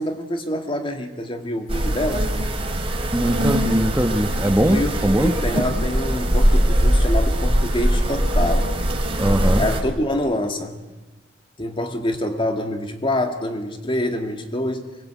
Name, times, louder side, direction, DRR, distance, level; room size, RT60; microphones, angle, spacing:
voice 1, 0.0-2.3 4.7-8.8 9.6-10.8 11.6-14.9, left 1 dB, 30° left, 6 dB, 2.2 m, -26 dB
sound 1, 1.7-9.8, equal, 30° right, 3.3 m, -21 dB
voice 2, 3.1-5.3 9.2-9.6, right 1 dB, 10° right, 6 dB, 1.1 m, -20 dB
24.5 x 21.0 x 8.4 m, 1.1 s
head